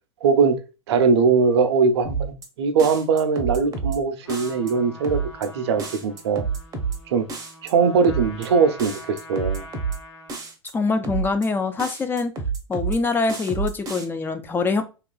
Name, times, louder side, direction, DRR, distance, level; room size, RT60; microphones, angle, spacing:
voice 1, 0.2-0.6 0.9-6.4 7.1-7.3 7.6-9.6, right 5 dB, 65° right, 0.5 m, -21 dB
sound 1, 2.0-2.5 2.8-4.0 4.3-4.7 5.0-5.5 5.8-7.0 7.3-7.7 8.0-8.5 8.8-10.0 10.3-10.7 11.0-11.5 11.8-13.0 13.3-14.0, right 5 dB, 25° right, 0.7 m, -29 dB
Trumpet, 4.2-10.5, left 1 dB, 85° left, 0.8 m, -44 dB
voice 2, 10.7-12.3 12.7-14.8, left 4 dB, 15° left, 0.4 m, -24 dB
2.9 x 2.4 x 2.2 m
hypercardioid pair, 100°, 15 cm